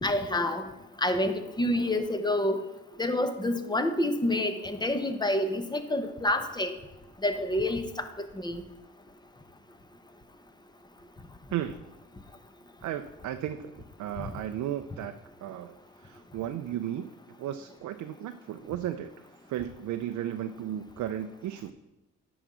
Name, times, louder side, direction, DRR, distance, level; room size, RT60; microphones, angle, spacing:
voice 1, 0.0-0.7 1.0-2.6 3.0-6.8 7.2-8.6 14.2-14.3, left 1 dB, 15° left, 8 dB, 0.9 m, -28 dB
voice 2, 11.5-11.9 12.8-13.7 14.0-15.1 15.4-17.1 17.4-21.7, right 11 dB, 70° right, 8 dB, 0.5 m, -35 dB
10.0 x 4.0 x 6.1 m, 0.98 s
cardioid pair, 90°, 30 cm